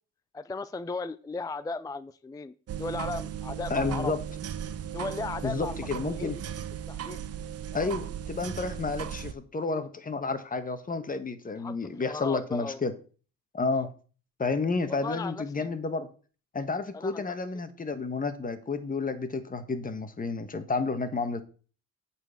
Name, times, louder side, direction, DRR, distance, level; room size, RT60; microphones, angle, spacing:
voice 1, 0.3-4.1 4.9-6.3 6.9-7.2 7.7-7.9 11.6-12.8 13.7-13.9 14.9-15.7 16.9-17.4, left 3 dB, 15° left, 0.4 m, -36 dB
sound 1, 2.7-9.3, right 9 dB, 55° right, 0.8 m, -36 dB
voice 2, 3.7-4.2 5.4-6.4 7.7-12.9 13.5-13.9 14.4-16.1 16.5-21.4, left 4 dB, 30° left, 1.4 m, -31 dB
8.7 x 4.4 x 7.2 m
cardioid pair, 90°, 30 cm